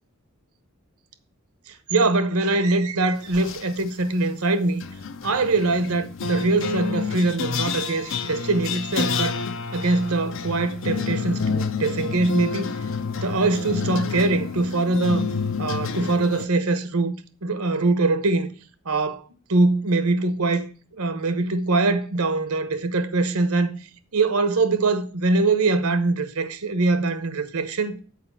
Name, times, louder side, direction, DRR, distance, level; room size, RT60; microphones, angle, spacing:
voice 1, 1.7-4.8 5.2-9.4 9.7-12.7 13.2-15.3 15.6-17.2 17.4-18.5 18.8-19.2 19.5-23.7 24.1-28.0, right 3 dB, 85° right, 1.0 m, -23 dB
sound 1, 3.3-3.8 4.8-16.5, left 5 dB, 60° left, 0.6 m, -29 dB
7.7 x 4.9 x 7.0 m
head